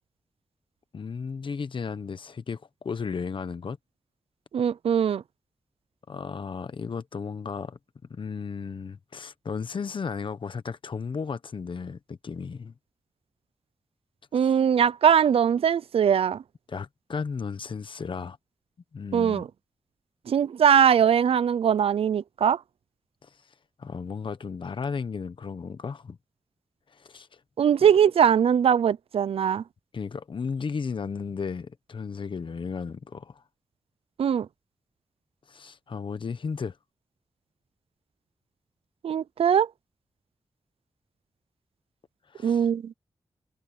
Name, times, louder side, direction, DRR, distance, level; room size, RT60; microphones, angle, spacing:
voice 1, 0.9-3.8 6.1-7.8 8.1-12.7 14.4-14.5 16.7-18.4 18.9-19.4 23.2-23.3 23.8-26.2 26.9-27.4 29.9-33.4 35.5-36.8 42.3-42.7, left 5 dB, 60° left, 1.1 m, -34 dB
voice 2, 4.5-5.2 14.3-16.4 19.1-19.5 20.3-22.6 27.6-29.6 34.2-34.5 39.0-39.7 42.4-42.9, right 8 dB, 90° right, 0.5 m, -21 dB
wide cardioid pair, 100°, 10 cm